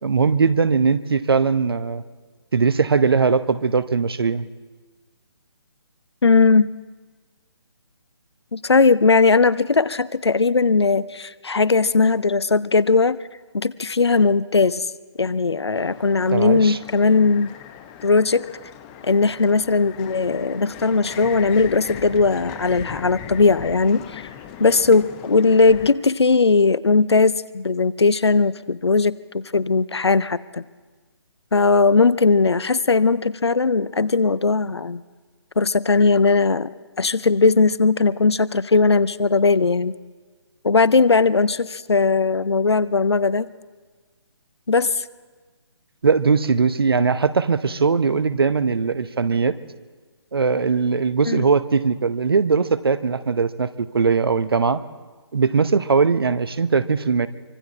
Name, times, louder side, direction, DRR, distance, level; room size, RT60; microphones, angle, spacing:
voice 1, 0.0-2.0 2.5-4.5 16.3-16.8 46.0-49.5 50.3-54.8 55.3-57.3, right 5 dB, 60° right, 14 dB, 0.9 m, -20 dB
voice 2, 6.2-6.7 8.5-13.2 13.5-14.9 15.2-17.5 18.0-18.5 19.0-24.2 24.6-30.6 31.5-35.0 35.6-36.7 37.0-39.9 40.6-43.5 44.7-45.1 51.2-51.5, left 4 dB, 70° left, 18 dB, 0.7 m, -18 dB
sound 1, 15.7-25.9, left 9 dB, 15° left, 0.8 m, -39 dB
25.0 x 24.0 x 4.4 m, 1.4 s
figure-of-eight pair, 145°, 14 cm